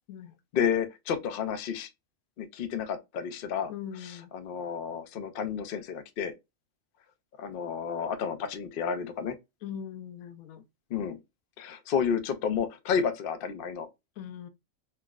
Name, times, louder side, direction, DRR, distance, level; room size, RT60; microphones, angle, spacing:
voice 1, 0.5-1.9 2.4-3.7 4.0-6.3 7.4-9.3 10.9-11.2 11.6-13.9, left 7 dB, 60° left, 0.6 m, -31 dB
voice 2, 3.7-4.3 9.6-10.6 14.2-14.5, left 9 dB, 90° left, 1.0 m, -40 dB
4.4 x 2.0 x 2.2 m
omnidirectional pair, 1.4 m